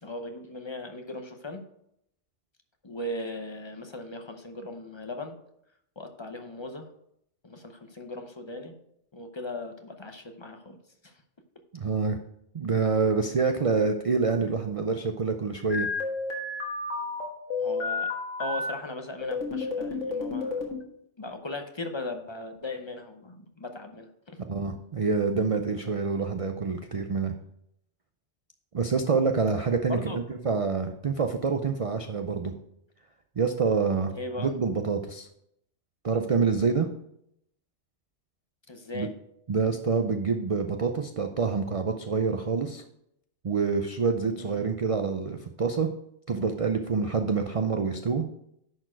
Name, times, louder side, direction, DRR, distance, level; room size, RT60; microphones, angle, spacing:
voice 1, 0.0-1.6 2.8-5.4 6.0-6.9 7.4-8.8 9.1-10.8 11.0-11.1 17.6-18.1 18.4-20.6 21.2-24.4 29.9-30.2 34.2-34.5 38.7-39.1 44.4-44.6, left 2 dB, 25° left, 5 dB, 0.7 m, -38 dB
voice 2, 11.7-12.2 12.5-15.9 24.5-27.3 28.7-32.5 33.4-35.3 36.0-36.9 38.9-39.1 39.5-42.8 43.4-45.9 46.3-48.2, right 5 dB, 55° right, 6 dB, 0.3 m, -27 dB
sound 1, 15.7-18.7 19.2-20.8, left 3 dB, 80° left, 1.8 m, -31 dB
10.5 x 4.4 x 4.5 m, 0.76 s
omnidirectional pair, 1.3 m